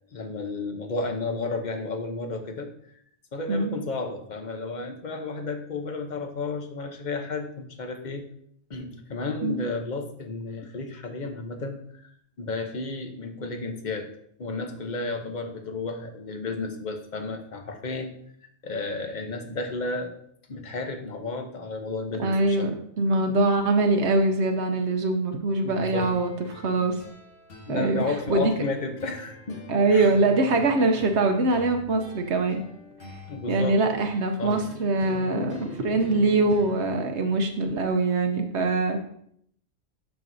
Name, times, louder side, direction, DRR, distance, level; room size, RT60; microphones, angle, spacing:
voice 1, 0.1-2.7 3.3-8.2 8.7-12.1 12.4-14.1 14.4-18.1 18.6-20.1 20.5-22.7 25.6-26.1 27.7-29.6 29.9-30.1 33.3-34.0 34.4-34.6, left 3 dB, 40° left, 4 dB, 1.0 m, -32 dB
voice 2, 22.2-22.7 23.0-27.0 27.7-28.0 28.3-28.5 29.7-32.6 33.5-39.0, right 2 dB, 70° right, 5 dB, 1.0 m, -23 dB
sound 1, 26.0-37.0, left 1 dB, 90° left, 1.8 m, -45 dB
12.0 x 4.6 x 2.7 m, 0.69 s
omnidirectional pair, 1.2 m